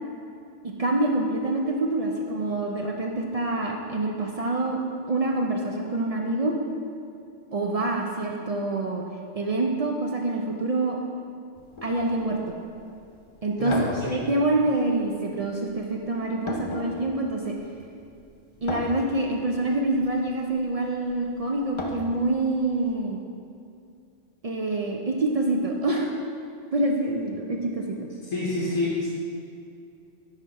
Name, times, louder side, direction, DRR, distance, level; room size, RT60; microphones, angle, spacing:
voice 1, 0.6-4.8 5.1-6.5 7.5-9.0 9.3-11.0 11.8-12.4 13.4-13.8 14.0-17.5 18.6-23.2 24.4-26.1 26.7-28.1, right 2 dB, 60° right, 0 dB, 0.3 m, -26 dB
sound 1, 11.6-22.9, left 2 dB, 35° left, 0.5 m, -40 dB
voice 2, 13.6-14.1 28.3-29.1, left 2 dB, 80° left, -6 dB, 1.5 m, -27 dB
11.0 x 4.1 x 4.1 m, 2.5 s
omnidirectional pair, 1.4 m